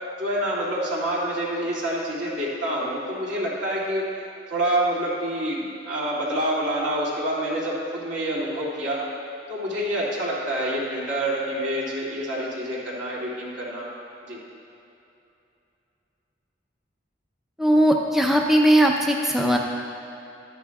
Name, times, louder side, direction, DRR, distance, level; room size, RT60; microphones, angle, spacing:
voice 1, 0.2-4.0 4.5-9.0 9.5-13.9 14.3-14.4, right 1 dB, 75° right, -6 dB, 2.4 m, -27 dB
voice 2, 17.6-19.6, right 1 dB, ahead, 0 dB, 0.4 m, -19 dB
12.5 x 10.5 x 2.3 m, 2.8 s
head